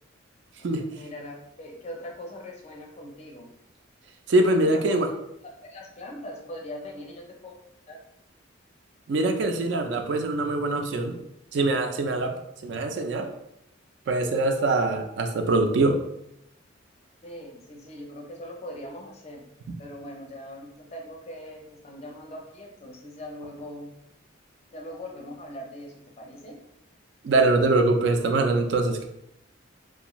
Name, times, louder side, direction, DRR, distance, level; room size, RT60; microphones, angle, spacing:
voice 1, 0.6-3.5 4.4-5.0 5.6-7.6 7.9-8.0 17.2-19.4 19.8-24.0 24.7-26.6, left 1 dB, 30° left, 0 dB, 0.5 m, -41 dB
voice 2, 4.3-5.1 9.1-11.2 11.5-13.3 14.1-16.0 27.2-29.1, right 2 dB, 60° right, 4 dB, 0.3 m, -23 dB
2.5 x 2.3 x 2.9 m, 0.79 s
head